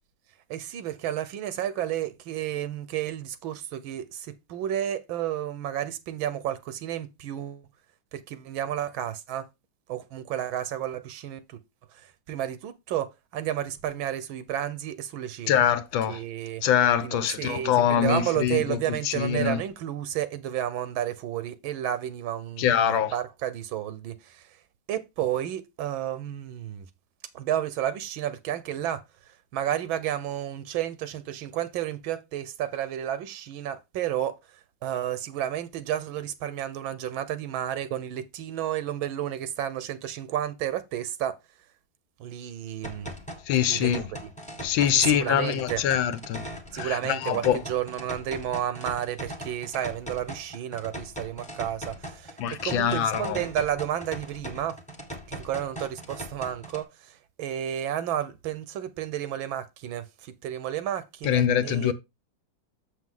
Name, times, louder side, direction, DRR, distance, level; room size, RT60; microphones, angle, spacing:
voice 1, 0.5-7.7 8.1-9.4 9.9-11.6 11.9-15.6 16.1-16.6 17.0-24.5 24.9-26.9 27.3-29.0 29.5-34.3 34.8-41.3 42.2-43.1 43.7-44.3 44.9-45.8 46.7-54.8 55.3-61.9, right 11 dB, 85° right, 1.6 m, -31 dB
voice 2, 15.5-16.2 16.6-18.8 19.1-19.6 22.6-23.1 43.5-44.0 44.6-46.4 46.8-47.6 52.4-53.4 61.2-61.9, left 9 dB, 80° left, 1.5 m, -24 dB
sound 1, 42.8-56.8, equal, 5° left, 1.1 m, -40 dB
7.0 x 6.3 x 3.7 m
omnidirectional pair, 2.1 m